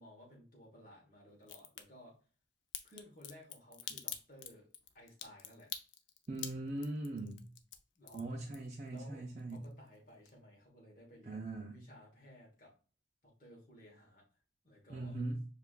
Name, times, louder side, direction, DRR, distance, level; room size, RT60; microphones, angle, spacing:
voice 1, 0.0-2.2 2.8-4.7 4.9-5.7 8.0-8.3 8.9-12.7 13.2-14.2 14.6-15.2, left 1 dB, 45° left, -2 dB, 1.2 m, -57 dB
Crack, 1.4-1.8 2.7-9.0 9.3-10.0 10.3-10.4, left 10 dB, 80° left, 0.5 m, -45 dB
voice 2, 6.3-7.4 8.1-9.6 11.3-11.8 14.9-15.4, right 2 dB, 40° right, -1 dB, 0.5 m, -40 dB
6.9 x 2.4 x 2.4 m, 0.38 s
head